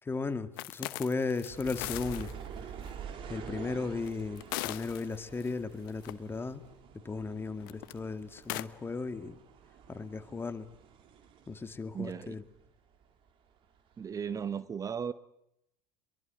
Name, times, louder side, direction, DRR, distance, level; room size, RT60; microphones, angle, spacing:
voice 1, 0.0-2.3 3.3-6.6 7.0-9.4 9.9-10.7 11.5-12.4, left 4 dB, 20° left, 10 dB, 2.0 m, -36 dB
sound 1, 0.6-2.3 2.9-3.0 4.0-5.5 5.9-6.1 7.6-7.9 8.4-8.6, left 20 dB, 70° left, 1.0 m, -39 dB
sound 2, 1.5-12.7 12.9-14.0 14.5-14.6, right 7 dB, 50° right, 3.4 m, -48 dB
voice 2, 11.9-12.4 14.0-15.1, right 7 dB, 30° right, 15 dB, 1.0 m, -36 dB
23.0 x 22.5 x 9.4 m, 0.79 s
hypercardioid pair, 75°, 12 cm